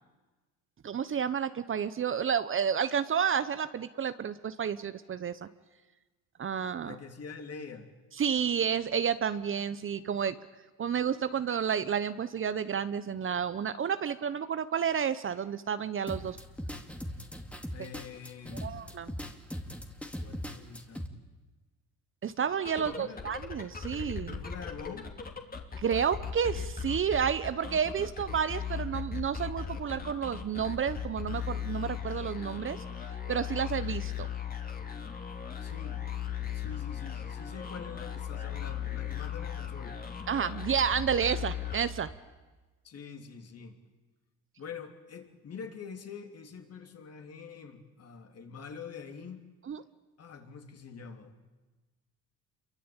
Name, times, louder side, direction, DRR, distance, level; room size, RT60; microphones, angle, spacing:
voice 1, 0.8-5.5 6.4-7.0 8.1-10.3 10.8-16.4 18.6-19.1 22.2-24.4 25.8-32.8 33.3-34.3 40.3-42.1 49.7-49.8, right 7 dB, 35° right, 13 dB, 1.0 m, -30 dB
voice 2, 6.8-7.9 17.7-18.8 20.2-21.1 22.8-23.2 24.3-25.1 35.6-36.1 36.5-40.0 42.8-43.8 44.6-49.4 50.2-51.3, left 6 dB, 40° left, 5 dB, 3.5 m, -45 dB
sound 1, 16.1-21.1, equal, 5° left, 2.5 m, -40 dB
sound 2, 22.5-42.3, left 7 dB, 25° left, 2.9 m, -38 dB
27.5 x 23.5 x 9.0 m, 1.2 s
cardioid pair, 110°, 36 cm